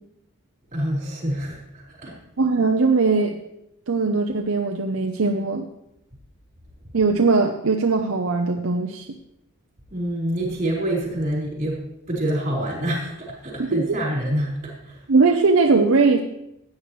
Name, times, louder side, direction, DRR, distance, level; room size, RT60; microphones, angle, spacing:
voice 1, 0.7-2.1 9.9-11.8 12.1-15.0, right 1 dB, 35° right, -4 dB, 4.8 m, -26 dB
voice 2, 2.4-3.4 3.9-5.7 6.9-9.1 13.6-14.0 15.1-16.2, right 4 dB, 65° right, 3 dB, 0.7 m, -20 dB
16.0 x 9.5 x 3.2 m, 0.82 s
head